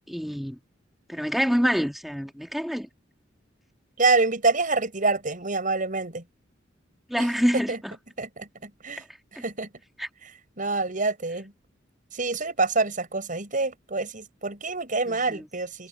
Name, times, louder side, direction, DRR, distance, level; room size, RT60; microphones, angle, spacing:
voice 1, 0.1-0.6 1.1-2.9 7.1-7.9 10.0-10.1 15.1-15.4, equal, ahead, 2.0 m, -26 dB
voice 2, 4.0-6.2 7.2-7.3 7.5-7.8 8.2-9.0 9.4-9.7 10.6-11.5 12.1-15.9, right 3 dB, 45° right, 6.6 m, -26 dB
head